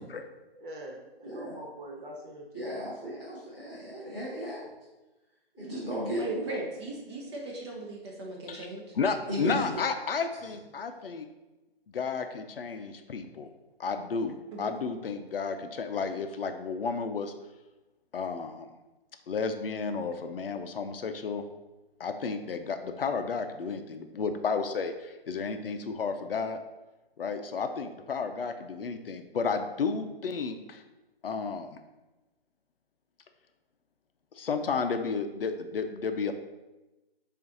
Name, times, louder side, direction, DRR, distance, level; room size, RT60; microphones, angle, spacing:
voice 1, 0.5-2.7, right 1 dB, 55° right, 0 dB, 1.1 m, -44 dB
voice 2, 1.2-1.6 2.5-4.6 5.5-6.6 9.3-9.7, equal, 5° left, -18 dB, 0.4 m, -35 dB
voice 3, 6.2-8.9 14.5-14.7, right 2 dB, 25° right, -2 dB, 0.8 m, -38 dB
voice 4, 9.0-11.3 11.9-13.5 13.8-17.3 18.1-18.7 19.3-21.4 22.0-26.6 27.2-30.8 31.2-31.8 34.4-36.3, left 5 dB, 65° left, 7 dB, 0.5 m, -32 dB
5.2 x 2.5 x 4.0 m, 1.1 s
hypercardioid pair, 160°, 31 cm